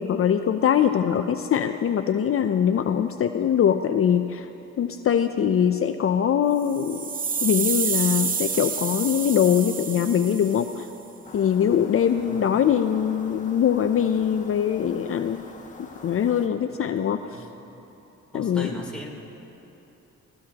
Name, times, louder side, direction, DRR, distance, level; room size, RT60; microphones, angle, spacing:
voice 1, 0.0-4.5 4.8-7.1 7.4-10.9 11.3-15.5 15.8-17.4 18.3-18.7, left 8 dB, 45° left, 8 dB, 0.6 m, -22 dB
sound 1, 6.6-10.8, right 5 dB, 30° right, 0.6 m, -28 dB
sound 2, 11.2-16.5, left 3 dB, 25° left, 1.5 m, -45 dB
voice 2, 18.3-19.1, left 1 dB, 5° left, -4 dB, 3.3 m, -38 dB
26.0 x 16.5 x 2.9 m, 3.0 s
cardioid pair, 90°, 30 cm